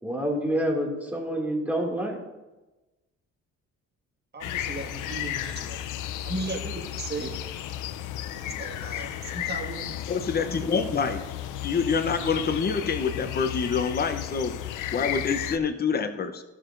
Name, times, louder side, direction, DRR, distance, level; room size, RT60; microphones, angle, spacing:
voice 1, 0.0-2.2 7.2-7.3, equal, 5° right, -1 dB, 2.2 m, -28 dB
voice 2, 4.3-5.9 6.2-7.4 8.4-10.0, right 2 dB, 35° right, 0 dB, 1.8 m, -36 dB
sound 1, 4.4-15.6, left 11 dB, 85° left, 0.6 m, -34 dB
voice 3, 10.1-11.2 11.6-16.4, left 5 dB, 30° left, 8 dB, 0.8 m, -27 dB
15.0 x 6.3 x 2.6 m, 1.1 s
cardioid pair, 90°, 30 cm